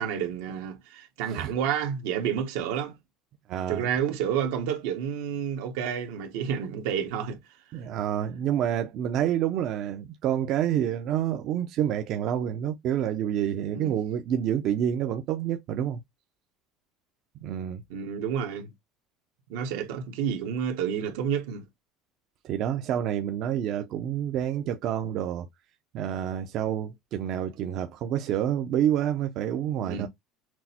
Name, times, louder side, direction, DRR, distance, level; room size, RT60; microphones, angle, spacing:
voice 1, 0.0-2.9 3.7-7.4 13.7-14.0 17.9-18.7 19.5-21.6 29.8-30.1, right 8 dB, 85° right, 1.1 m, -30 dB
voice 2, 3.5-3.9 7.7-16.0 17.4-17.8 22.4-25.5 25.9-30.1, right 10 dB, 50° right, 0.5 m, -28 dB
6.0 x 2.0 x 2.8 m
cardioid pair, 135°, 0 cm